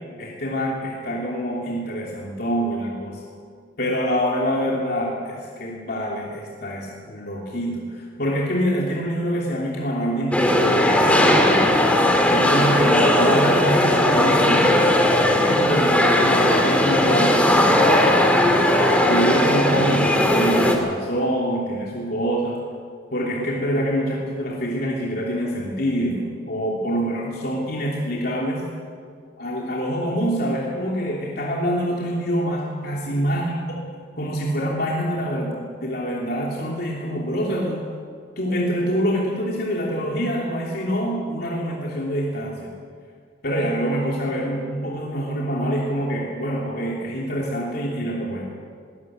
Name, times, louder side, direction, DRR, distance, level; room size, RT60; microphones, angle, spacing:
voice 1, 0.2-3.2 3.8-11.7 12.3-22.6 23.1-28.6 29.4-33.5 34.2-37.8 38.4-42.7 43.4-48.5, equal, 55° left, -3 dB, 3.1 m, -25 dB
sound 1, 10.3-20.7, left 1 dB, 5° left, 2.5 m, -18 dB
21.0 x 19.0 x 8.0 m, 2.1 s
head